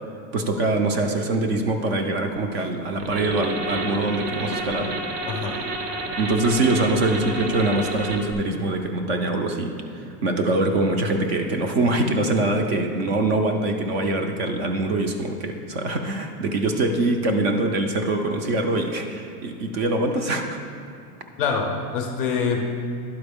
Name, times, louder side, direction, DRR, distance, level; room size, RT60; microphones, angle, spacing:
voice 1, 0.3-4.9 6.2-20.6, right 2 dB, 40° right, 5 dB, 0.4 m, -23 dB
sound 1, 3.0-8.3, right 2 dB, 80° right, 1.0 m, -30 dB
voice 2, 5.3-5.6 21.4-22.6, left 5 dB, 35° left, 3 dB, 0.4 m, -25 dB
11.5 x 4.4 x 3.5 m, 2.6 s
supercardioid pair, 170°, 48 cm